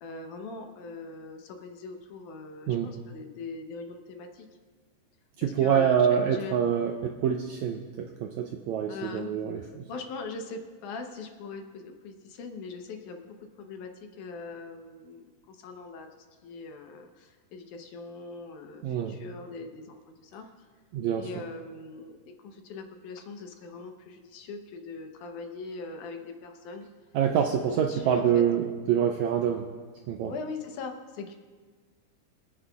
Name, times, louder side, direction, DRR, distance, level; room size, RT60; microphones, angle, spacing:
voice 1, 0.0-4.5 5.4-6.9 8.9-9.3 9.6-20.7 21.1-22.2 22.4-26.9 27.6-28.4 30.3-31.3, left 4 dB, 70° left, 4 dB, 2.2 m, -41 dB
voice 2, 5.4-9.9 18.8-19.2 20.9-21.4 27.1-29.6 30.1-30.3, right 8 dB, 85° right, 4 dB, 1.6 m, -26 dB
25.0 x 9.8 x 2.3 m, 1.5 s
omnidirectional pair, 3.9 m